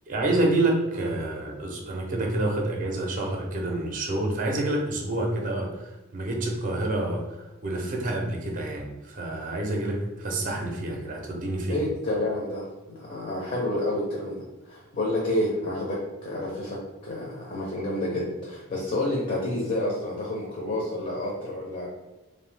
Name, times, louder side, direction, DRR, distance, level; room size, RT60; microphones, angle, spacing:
voice 1, 0.1-11.8, right 2 dB, 40° right, 1 dB, 0.4 m, -28 dB
voice 2, 11.7-14.4 14.7-21.9, left 1 dB, 40° left, -3 dB, 0.5 m, -29 dB
2.7 x 2.0 x 3.2 m, 1.1 s
head